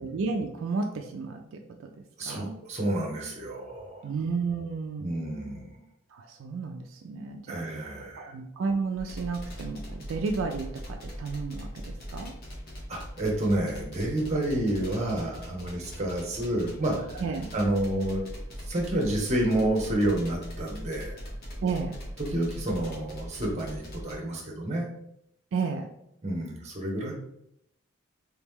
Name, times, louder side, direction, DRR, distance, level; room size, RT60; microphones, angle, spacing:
voice 1, 0.0-1.9 2.3-2.6 4.0-5.1 6.1-12.3 17.2-17.5 21.6-22.0 25.5-25.9, right 4 dB, 70° right, 4 dB, 0.3 m, -32 dB
voice 2, 2.2-4.1 5.0-5.8 7.5-8.3 12.9-17.2 17.5-18.2 18.7-21.2 22.2-24.9 26.2-27.1, right 1 dB, 35° right, 0 dB, 0.9 m, -29 dB
sound 1, 9.0-24.2, equal, 50° left, 1.1 m, -40 dB
3.4 x 3.0 x 3.6 m, 0.79 s
head